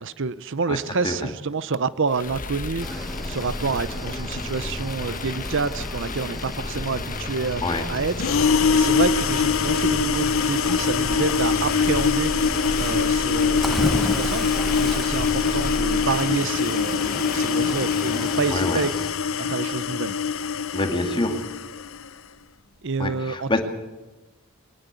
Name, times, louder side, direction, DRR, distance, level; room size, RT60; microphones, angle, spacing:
voice 1, 0.0-12.5 12.8-18.9 19.4-20.1 22.8-23.6, right 4 dB, 55° right, 16 dB, 0.7 m, -28 dB
sound 1, 2.1-18.8, left 3 dB, 35° left, 1.1 m, -33 dB
Cricket / Waves surf, 2.8-19.1, equal, ahead, 0.9 m, -34 dB
sound 2, 8.2-22.1, left 6 dB, 65° left, 0.8 m, -23 dB
voice 2, 18.5-18.8 20.7-21.4 23.0-23.6, left 2 dB, 20° left, 5 dB, 2.3 m, -26 dB
22.5 x 19.0 x 8.3 m, 1.1 s
head